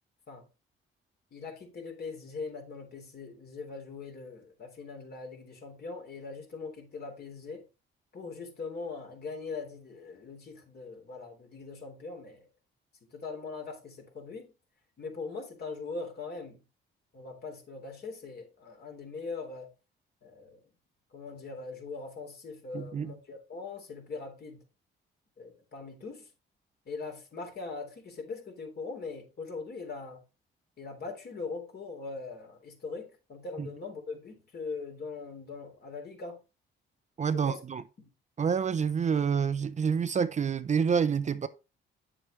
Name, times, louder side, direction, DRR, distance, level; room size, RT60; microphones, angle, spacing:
voice 1, 1.3-7.6 8.1-12.5 13.1-14.5 15.0-16.6 17.1-19.7 20.2-20.6 21.1-24.6 25.4-26.3 26.9-30.2 30.8-36.4 37.3-37.6 38.0-38.1, left 4 dB, 55° left, 3.6 m, -41 dB
voice 2, 22.7-23.2 33.6-33.7 37.2-37.8 38.4-41.5, right 6 dB, 35° right, 0.6 m, -28 dB
8.8 x 7.4 x 3.2 m
cardioid pair, 90°, 20 cm